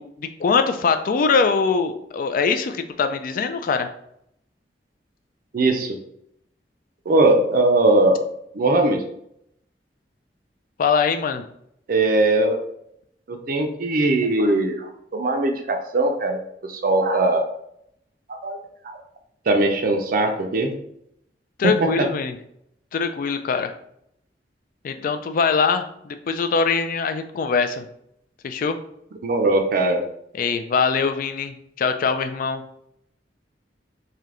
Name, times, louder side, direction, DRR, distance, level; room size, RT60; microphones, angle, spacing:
voice 1, 0.0-3.9 10.8-11.4 21.6-22.3 22.9-23.7 24.8-27.9 28.4-28.8 30.3-32.6, left 5 dB, 50° left, 8 dB, 0.3 m, -22 dB
voice 2, 5.5-6.0 7.1-8.2 8.5-9.0 11.9-12.6 13.3-16.4 16.7-17.5 18.3-18.6 18.8-19.0 19.5-20.7 21.6-21.7 29.2-30.0, right 2 dB, 55° right, 4 dB, 0.5 m, -20 dB
3.3 x 2.7 x 3.7 m, 0.74 s
head